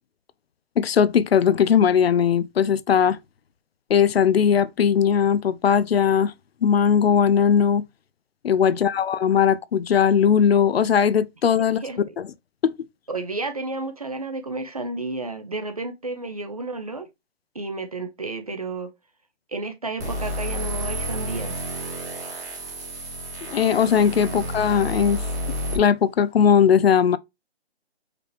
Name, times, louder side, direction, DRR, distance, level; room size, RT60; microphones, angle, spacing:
voice 1, 0.8-3.2 3.9-6.3 6.6-7.8 8.4-11.8 12.6-12.7 23.5-25.2 25.7-27.2, left 8 dB, 65° left, 0.5 m, -19 dB
voice 2, 11.8-12.1 13.1-17.1 17.5-18.9 19.5-21.6 24.3-24.4, right 3 dB, 35° right, 0.5 m, -32 dB
sound 1, 20.0-25.8, equal, 15° right, 1.0 m, -30 dB
5.0 x 3.2 x 3.0 m
hypercardioid pair, 175°, 33 cm